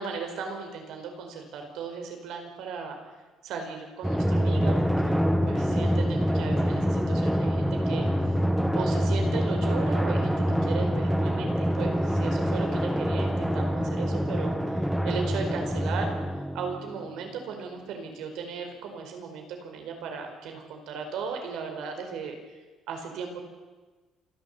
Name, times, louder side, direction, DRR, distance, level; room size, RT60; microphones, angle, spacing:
voice 1, 0.0-3.0 3.4-8.1 8.7-16.1 16.5-22.6 22.9-23.4, right 5 dB, 70° right, 4 dB, 4.6 m, -37 dB
Drum, 4.0-17.1, equal, ahead, 1.1 m, -26 dB
27.5 x 12.0 x 8.4 m, 1.3 s
cardioid pair, 175°, 0 cm